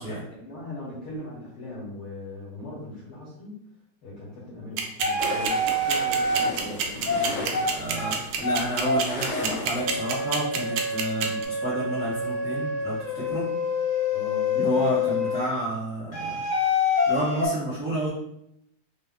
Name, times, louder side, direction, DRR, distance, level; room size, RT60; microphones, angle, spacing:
voice 1, 0.0-3.5 4.0-8.2 14.1-14.6, left 1 dB, 65° left, -7 dB, 1.4 m, -40 dB
sound 1, 4.8-11.4, right 8 dB, 80° right, 1.6 m, -26 dB
sound 2, 5.0-6.5 7.1-7.2 7.5-7.7 7.9-8.1 8.4-8.6 8.8-9.0 9.3-9.5 9.7-15.5 16.1-17.5, left 3 dB, 45° left, 0.9 m, -26 dB
sound 3, 5.2-10.3, left 2 dB, 80° left, 1.2 m, -36 dB
voice 2, 7.7-13.5 14.5-16.4 17.1-18.1, right 1 dB, 55° right, -10 dB, 0.9 m, -30 dB
5.0 x 2.1 x 3.5 m, 0.78 s
omnidirectional pair, 3.5 m